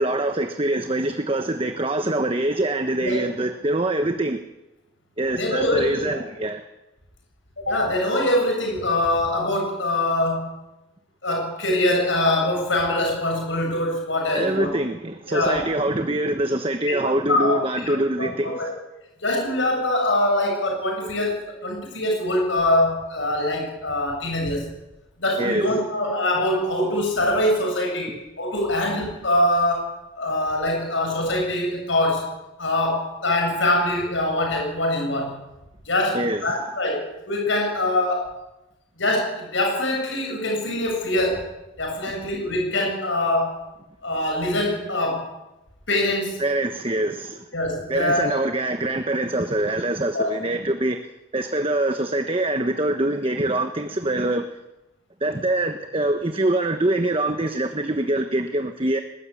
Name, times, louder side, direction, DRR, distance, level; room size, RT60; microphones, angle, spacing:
voice 1, 0.0-4.4 5.2-6.6 14.3-18.6 25.4-25.7 36.1-36.4 46.4-47.5 47.9-51.0 51.3-54.5 55.2-59.0, right 1 dB, 25° right, 7 dB, 1.2 m, -24 dB
voice 2, 5.3-6.2 7.6-10.5 11.2-14.7 15.3-15.6 16.9-18.7 19.2-24.7 25.2-32.3 32.6-35.4 35.9-38.4 39.0-41.5 41.8-43.6 44.0-45.3 45.9-46.4 47.5-48.3 50.1-50.3, left 1 dB, 65° left, 1 dB, 7.8 m, -23 dB
22.5 x 20.5 x 8.5 m, 0.97 s
head